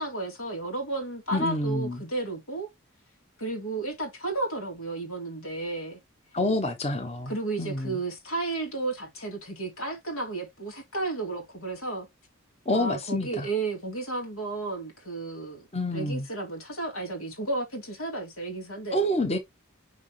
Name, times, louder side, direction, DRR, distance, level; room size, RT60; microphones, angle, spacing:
voice 1, 0.0-2.7 3.4-6.0 7.3-12.1 12.7-15.7 15.9-19.0, right 2 dB, 85° left, 3.4 m, -33 dB
voice 2, 1.3-2.0 6.3-7.3 7.6-8.0 12.7-13.5 15.7-16.3 18.9-19.4, left 1 dB, 30° left, 1.0 m, -27 dB
6.2 x 5.0 x 3.2 m
head